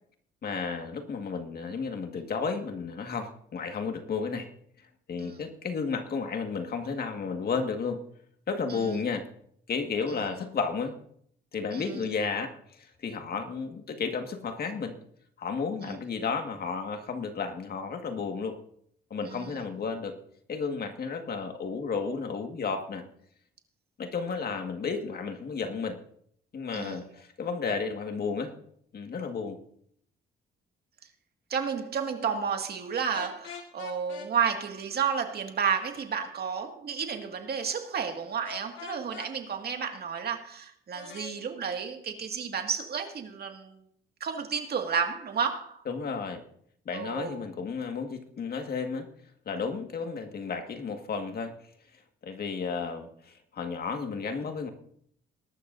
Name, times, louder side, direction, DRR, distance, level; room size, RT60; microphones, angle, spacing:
voice 1, 0.4-4.5 5.1-8.0 8.5-9.3 9.7-11.0 11.5-15.0 15.4-18.6 19.1-20.2 20.5-23.0 24.0-26.0 26.5-28.5 28.9-29.6 45.9-46.4 46.9-49.1 49.5-51.5 52.2-54.7, left 5 dB, 50° left, 1.9 m, -32 dB
voice 2, 11.7-12.0 15.8-16.0 19.2-19.6 26.7-27.0 31.5-43.8 44.2-45.8 46.9-47.4, right 6 dB, 55° right, 2.1 m, -32 dB
sound 1, 33.1-34.3 38.4-39.3 40.9-41.3, left 6 dB, 75° left, 2.2 m, -43 dB
20.5 x 12.0 x 2.7 m
cardioid pair, 90°, 20 cm